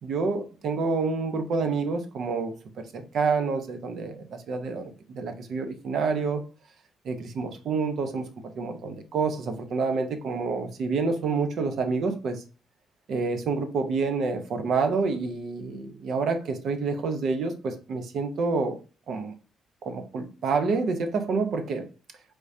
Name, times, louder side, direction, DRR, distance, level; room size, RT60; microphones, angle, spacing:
voice 1, 0.0-6.4 7.0-8.3 8.6-12.4 13.1-18.8 19.1-19.3 19.8-21.9, right 4 dB, 65° right, 0.9 m, -28 dB
4.7 x 3.6 x 2.7 m
cardioid pair, 90°, 0 cm